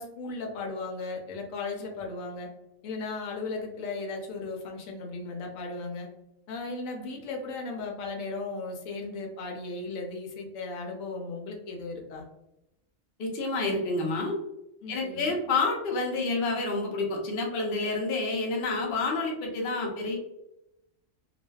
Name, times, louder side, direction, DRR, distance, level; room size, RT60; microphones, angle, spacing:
voice 1, 0.0-2.5 2.8-6.1 6.5-12.2 14.8-15.4, left 3 dB, 80° left, 1 dB, 1.0 m, -36 dB
voice 2, 13.2-14.4 14.9-20.2, left 3 dB, 55° left, 0 dB, 0.7 m, -29 dB
2.5 x 2.2 x 2.2 m, 0.87 s
omnidirectional pair, 1.4 m